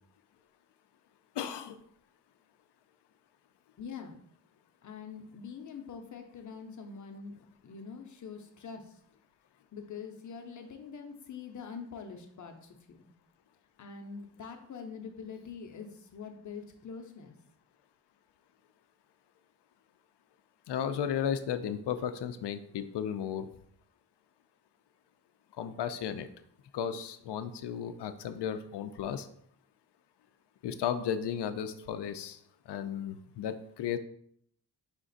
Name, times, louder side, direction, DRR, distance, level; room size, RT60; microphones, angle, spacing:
voice 1, 1.4-1.8 20.7-23.5 25.6-26.3 26.7-29.3 30.6-32.4 32.7-34.0, left 8 dB, 85° left, 10 dB, 0.5 m, -34 dB
voice 2, 3.8-4.2 4.8-7.4 7.6-9.0 9.7-13.0 13.8-17.3, left 6 dB, 45° left, 5 dB, 0.7 m, -44 dB
5.1 x 2.4 x 3.9 m, 0.68 s
wide cardioid pair, 125°, 40 cm